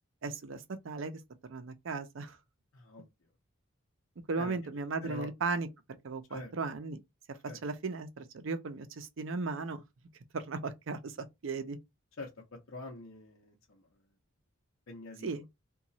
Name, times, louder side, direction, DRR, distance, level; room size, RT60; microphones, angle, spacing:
voice 1, 0.2-1.2 1.5-2.4 4.3-5.7 6.0-7.0 7.6-9.8 10.3-11.8 15.2-15.5, right 4 dB, 65° right, 0.5 m, -36 dB
voice 2, 2.7-3.3 4.4-4.7 5.0-5.3 6.3-6.5 7.5-7.6 12.2-14.1 14.9-15.5, left 2 dB, 75° left, 0.7 m, -46 dB
2.9 x 2.3 x 2.7 m
head